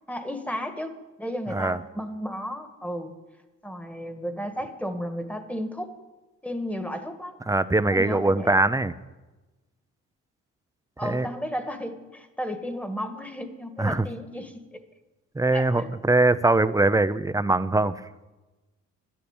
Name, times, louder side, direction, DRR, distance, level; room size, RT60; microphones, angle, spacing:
voice 1, 0.1-3.2 3.6-5.9 6.4-7.4 7.9-8.6 11.0-14.8 15.5-15.9, equal, 5° left, 8 dB, 1.6 m, -33 dB
voice 2, 1.5-1.8 7.5-8.9 11.0-11.3 13.8-14.1 15.3-18.1, right 2 dB, 10° right, 13 dB, 0.6 m, -22 dB
12.0 x 10.0 x 8.9 m, 1.1 s
cardioid pair, 90°, 30 cm